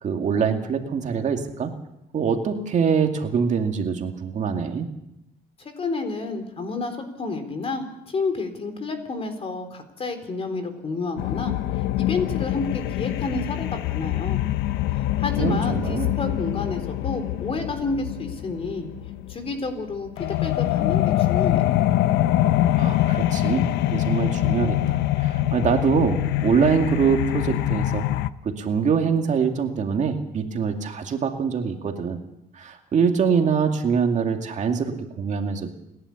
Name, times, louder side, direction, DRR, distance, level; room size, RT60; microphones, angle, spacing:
voice 1, 0.0-1.7 2.1-4.9 15.4-16.1 22.8-28.1 28.4-32.2 32.5-35.7, right 6 dB, 45° right, 4 dB, 2.4 m, -24 dB
voice 2, 5.6-14.4 14.9-18.9 19.3-21.8, left 3 dB, 35° left, 7 dB, 3.8 m, -30 dB
sound 1, 11.2-28.3, left 14 dB, 85° left, 0.7 m, -24 dB
28.5 x 11.5 x 8.4 m, 0.85 s
cardioid pair, 110°, 17 cm